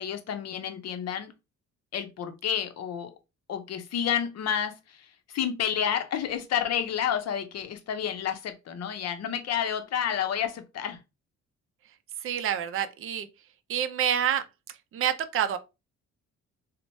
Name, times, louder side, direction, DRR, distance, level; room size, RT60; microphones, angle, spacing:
voice 1, 0.0-1.3 1.9-3.1 3.5-11.0, left 9 dB, 55° left, 0.6 m, -30 dB
voice 2, 12.2-13.3 13.7-14.4 14.9-15.6, right 9 dB, 45° right, 0.4 m, -27 dB
3.0 x 2.1 x 2.6 m
cardioid pair, 90°, 30 cm